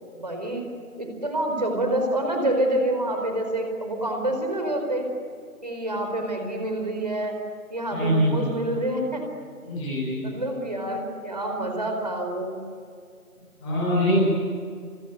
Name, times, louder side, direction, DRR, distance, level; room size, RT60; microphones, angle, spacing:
voice 1, 0.1-0.7 1.0-5.0 5.6-7.4 7.7-9.2 10.2-12.6, right 1 dB, 30° right, 3 dB, 4.6 m, -27 dB
voice 2, 7.9-8.5 9.6-10.2 13.6-14.2, equal, 5° left, -11 dB, 5.5 m, -23 dB
27.0 x 26.0 x 8.1 m, 2.2 s
figure-of-eight pair, 175°, 44 cm